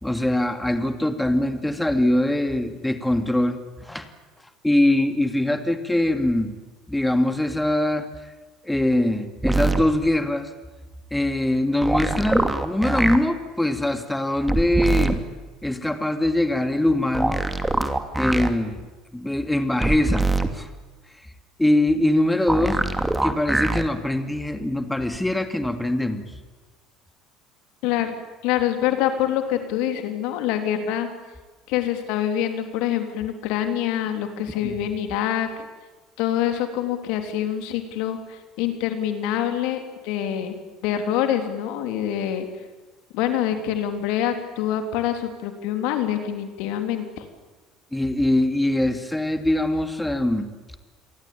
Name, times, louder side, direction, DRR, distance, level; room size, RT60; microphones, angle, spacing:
voice 1, 0.0-4.1 4.6-6.6 6.9-8.1 8.7-10.5 11.1-15.2 15.6-17.5 18.2-18.9 19.1-20.7 21.6-22.8 23.2-26.2 34.6-34.7 47.9-50.5, left 1 dB, 5° left, 8 dB, 2.6 m, -22 dB
sound 1, 9.4-9.8 11.8-13.2 14.5-15.2 17.1-18.5 19.8-20.5 22.5-23.8 25.1-25.2, right 2 dB, 10° right, 2.8 m, -23 dB
voice 2, 27.8-28.1 28.4-31.1 31.7-35.5 36.2-40.6 40.8-42.5 43.1-47.2, left 10 dB, 65° left, 7 dB, 3.5 m, -25 dB
29.0 x 23.0 x 8.8 m, 1.3 s
hypercardioid pair, 65°, 0 cm